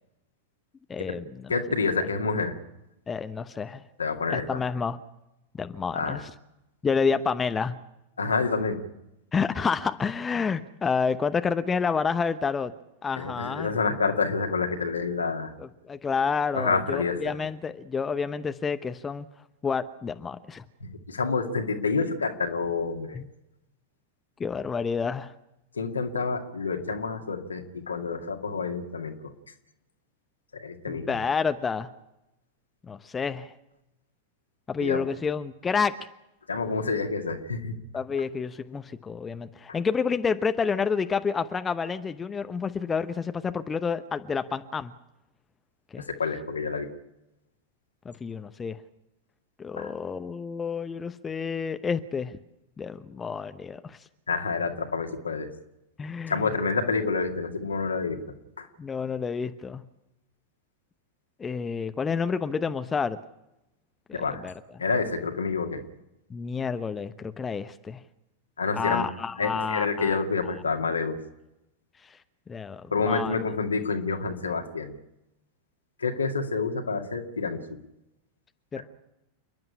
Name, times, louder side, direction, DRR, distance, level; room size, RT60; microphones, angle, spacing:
voice 1, 0.9-1.3 3.1-3.8 4.3-5.0 5.5-6.3 6.8-7.8 9.3-12.7 13.0-13.7 15.6-19.3 19.6-20.6 23.1-23.3 24.4-25.3 30.9-31.9 32.9-33.5 34.7-35.9 37.9-44.9 45.9-46.0 48.0-48.8 49.6-52.4 52.8-54.0 56.0-56.5 58.8-59.8 61.4-63.2 64.1-64.5 66.3-68.0 68.7-70.2 72.5-73.3 78.7-78.8, left 5 dB, 15° left, 10 dB, 0.9 m, -29 dB
voice 2, 1.5-2.5 4.0-4.6 5.9-6.2 8.2-8.8 13.2-15.5 16.5-17.3 20.8-23.2 25.7-29.3 30.6-31.2 34.8-35.0 36.5-37.8 46.0-46.9 49.8-49.9 54.3-55.5 56.3-58.2 58.6-58.7 64.1-64.4 64.8-65.8 68.6-69.1 69.4-71.2 72.9-74.9 76.0-77.6 78.7-78.8, left 4 dB, 75° left, 4 dB, 2.2 m, -28 dB
29.0 x 11.0 x 9.9 m, 0.90 s
figure-of-eight pair, 90°, 0 cm